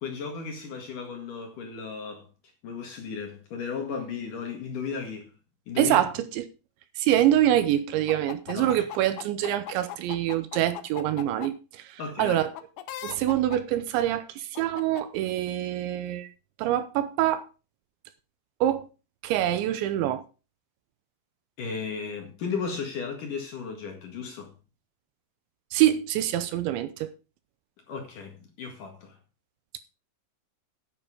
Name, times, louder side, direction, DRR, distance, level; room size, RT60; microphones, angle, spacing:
voice 1, 0.0-2.3 2.6-5.3 5.7-6.0 8.5-8.8 12.0-12.4 21.6-24.5 27.9-29.2, left 5 dB, 55° left, 2.7 m, -35 dB
voice 2, 5.8-6.5 7.0-12.5 13.0-16.3 16.6-17.5 18.6-18.9 19.2-20.2 25.7-27.1, right 12 dB, 80° right, 3.0 m, -25 dB
sound 1, 8.1-11.5 12.6-13.6 14.6-15.0, left 13 dB, 75° left, 2.2 m, -38 dB
10.5 x 9.7 x 5.0 m
omnidirectional pair, 5.6 m